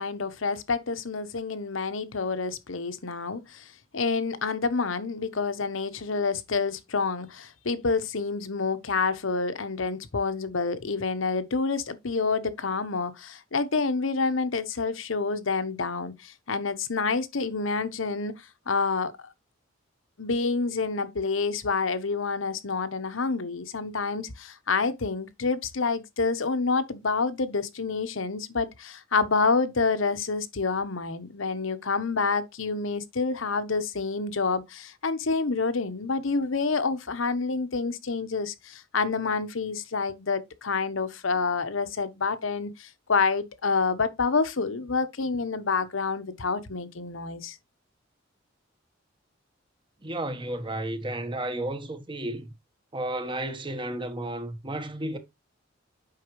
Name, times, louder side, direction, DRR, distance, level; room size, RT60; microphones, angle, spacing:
voice 1, 0.0-18.3 18.7-19.1 20.2-47.6, left 4 dB, 75° left, 1.0 m, -28 dB
voice 2, 50.0-52.5 52.9-55.2, right 1 dB, 25° right, 1.2 m, -32 dB
8.5 x 5.8 x 3.1 m
head